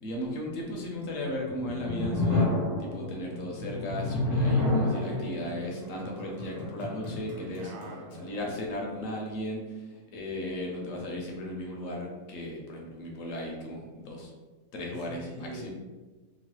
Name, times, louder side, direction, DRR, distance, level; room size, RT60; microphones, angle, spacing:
voice 1, 0.0-2.5 2.8-7.7 8.2-14.3 14.7-15.7, left 1 dB, 65° left, -1 dB, 0.9 m, -36 dB
sound 1, 1.5-8.5, left 2 dB, ahead, 0.7 m, -30 dB
voice 2, 4.8-5.4 7.6-8.2 14.9-15.7, right 1 dB, 75° right, 0 dB, 1.0 m, -43 dB
3.0 x 2.2 x 3.0 m, 1.3 s
omnidirectional pair, 1.6 m